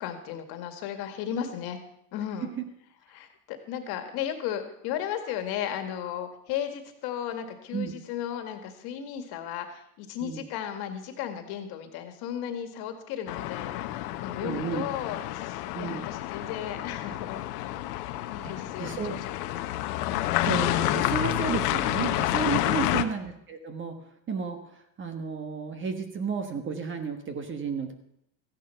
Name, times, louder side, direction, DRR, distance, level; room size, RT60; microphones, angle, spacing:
voice 1, 0.0-1.8 2.1-2.5 3.1-17.8 18.3-19.5 20.0-20.4, left 9 dB, 50° left, 7 dB, 2.0 m, -35 dB
sound 1, 13.3-23.1, left 14 dB, 65° left, 1.1 m, -29 dB
voice 2, 14.4-14.8 15.7-16.1 18.4-19.2 20.4-23.9 24.3-27.9, right 6 dB, 25° right, 7 dB, 1.3 m, -33 dB
15.0 x 10.5 x 5.7 m, 0.76 s
supercardioid pair, 135°, 49 cm